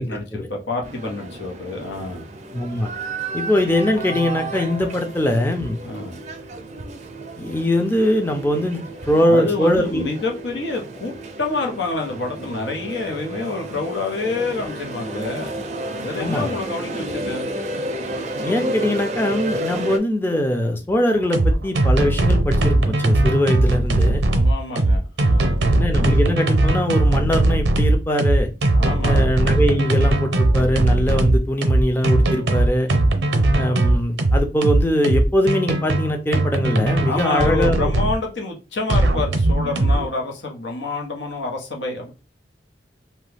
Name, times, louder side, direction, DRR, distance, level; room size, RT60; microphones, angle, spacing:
voice 1, 0.0-2.3 5.8-6.2 9.2-15.6 16.0-17.5 24.2-25.6 28.7-29.2 37.0-42.1, left 3 dB, 85° left, 0.9 m, -27 dB
sound 1, 0.8-20.0, right 1 dB, 40° right, 0.4 m, -32 dB
voice 2, 2.5-2.9 3.3-5.8 7.4-10.0 16.2-16.5 18.4-24.2 25.7-28.5 29.0-32.9 33.5-37.9, equal, 15° left, 0.5 m, -22 dB
sound 2, 4.0-6.9, right 1 dB, 60° left, 0.9 m, -39 dB
sound 3, 21.2-38.2 38.9-40.1, right 2 dB, 85° right, 0.6 m, -18 dB
2.8 x 2.3 x 3.3 m
head